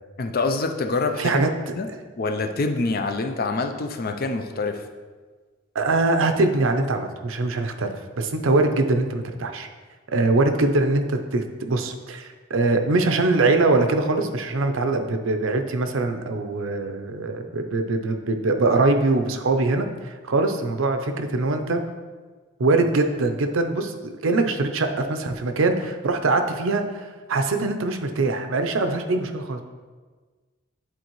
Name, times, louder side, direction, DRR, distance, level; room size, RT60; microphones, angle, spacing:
voice 1, 0.2-1.4 1.8-1.9 2.2-4.8, left 3 dB, 50° left, 6 dB, 0.5 m, -26 dB
voice 2, 1.2-1.5 5.7-7.9 8.2-9.7 10.1-21.8 22.6-29.6, right 2 dB, 70° right, 6 dB, 0.6 m, -23 dB
10.5 x 4.0 x 3.1 m, 1.4 s
head